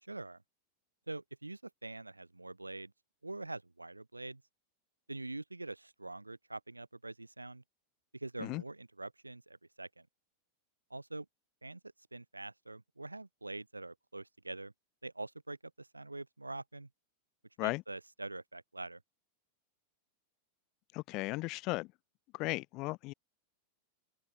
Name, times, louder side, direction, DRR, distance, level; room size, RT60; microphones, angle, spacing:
voice 1, 0.0-0.4 1.1-2.9 3.2-4.4 5.1-7.6 8.1-10.1 10.9-11.3 11.6-11.8 12.1-14.7 15.0-16.9 17.6-19.0, right 2 dB, 85° right, 2.8 m, -44 dB
voice 2, 20.9-21.9 22.3-23.1, left 22 dB, 40° left, 0.3 m, -36 dB
open air
figure-of-eight pair, 90°, 0 cm